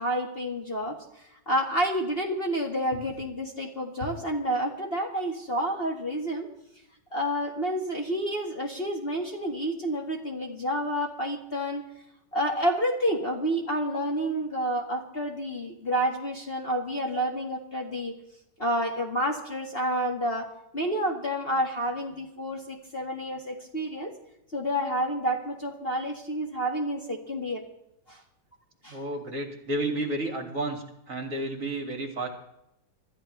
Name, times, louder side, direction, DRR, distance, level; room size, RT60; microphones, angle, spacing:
voice 1, 0.0-6.5 7.1-11.8 12.3-18.1 18.6-24.1 24.5-27.6 28.1-28.2 28.8-29.0, equal, 30° left, 1 dB, 1.8 m, -29 dB
voice 2, 28.9-32.3, right 1 dB, 45° right, 3 dB, 2.7 m, -31 dB
26.5 x 13.5 x 3.3 m, 0.81 s
omnidirectional pair, 2.1 m